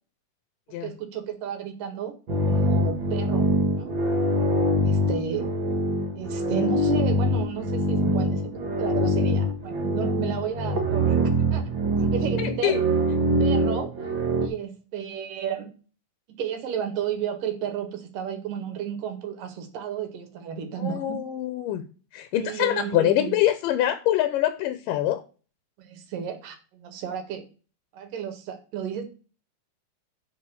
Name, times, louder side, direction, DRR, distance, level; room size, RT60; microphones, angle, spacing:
voice 1, 0.7-2.1 2.5-3.5 3.8-3.9 4.8-5.5 6.1-11.7 12.0-12.8 13.4-13.9 14.4-15.7 16.3-21.2 22.4-23.3 25.8-27.5 27.9-29.0, right 8 dB, 80° right, 7 dB, 3.2 m, -32 dB
sound 1, 2.3-14.5, equal, 45° right, 1.7 m, -24 dB
voice 2, 12.4-12.8 20.8-21.8 22.1-25.2, left 13 dB, 85° left, 10 dB, 2.5 m, -24 dB
9.0 x 4.2 x 6.9 m, 0.35 s
omnidirectional pair, 3.8 m